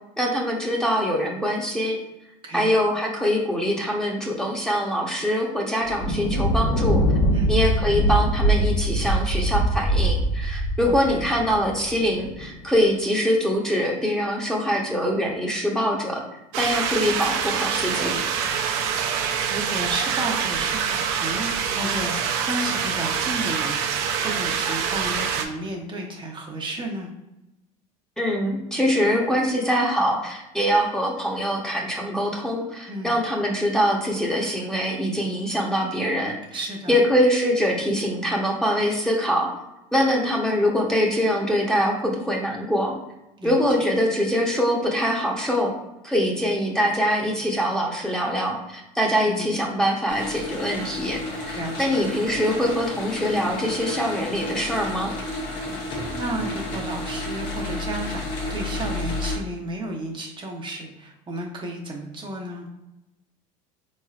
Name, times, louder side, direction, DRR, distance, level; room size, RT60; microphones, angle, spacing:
voice 1, 0.2-2.0 2.5-7.0 7.5-18.1 28.2-36.4 36.9-39.5 39.9-42.9 43.4-45.7 46.0-55.1, equal, 5° left, -1 dB, 0.8 m, -23 dB
Thunder, 5.9-12.5, right 1 dB, 55° left, 0.9 m, -23 dB
voice 2, 10.9-11.2 17.7-18.2 18.9-27.1 32.9-33.2 36.5-37.0 43.4-43.9 49.3-49.5 51.5-51.9 56.1-62.7, right 1 dB, 30° right, -1 dB, 0.7 m, -33 dB
sound 1, 16.5-25.5, right 7 dB, 70° right, 0.6 m, -25 dB
sound 2, 50.1-59.4, left 2 dB, 70° left, 1.3 m, -31 dB
3.8 x 3.2 x 2.4 m, 0.93 s
supercardioid pair, 95°, 18 cm